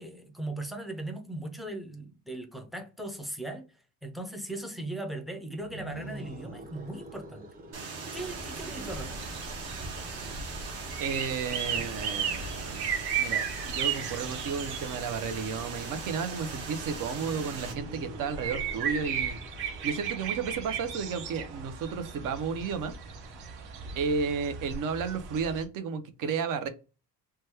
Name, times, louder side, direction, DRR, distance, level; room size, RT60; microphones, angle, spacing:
voice 1, 0.0-3.7 4.0-7.5 8.1-9.2, right 1 dB, ahead, 0.3 m, -38 dB
sound 1, 5.6-10.8 17.0-22.7, right 2 dB, 25° right, 0.8 m, -47 dB
sound 2, 7.7-17.7, right 4 dB, 40° right, 1.2 m, -40 dB
sound 3, 8.1-25.6, right 7 dB, 90° right, 1.0 m, -36 dB
voice 2, 11.0-12.9 13.2-19.4 19.8-22.9 23.9-26.7, right 5 dB, 55° right, 0.6 m, -33 dB
2.9 x 2.2 x 3.3 m
cardioid pair, 150°, 38 cm